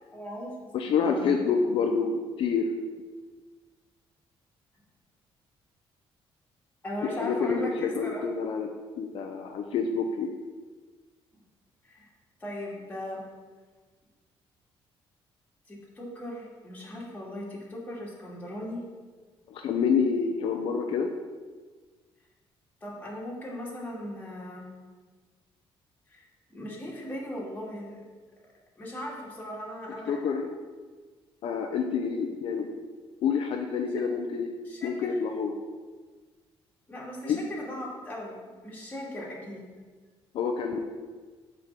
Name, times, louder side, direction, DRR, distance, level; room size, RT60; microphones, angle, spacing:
voice 1, 0.1-0.5 0.9-1.4 6.8-8.2 11.8-12.1 12.4-13.2 15.7-18.8 22.8-24.7 26.1-28.0 28.8-30.2 34.6-35.1 36.9-39.7, left 1 dB, 15° left, -5 dB, 2.5 m, -38 dB
voice 2, 0.7-2.7 7.0-8.7 9.0-10.3 19.5-21.1 30.1-30.5 31.4-32.7 33.2-34.5 34.8-35.5 37.2-37.5 40.3-41.0, left 5 dB, 65° left, 3 dB, 0.8 m, -28 dB
8.6 x 4.9 x 7.5 m, 1.4 s
cardioid pair, 150°, 10 cm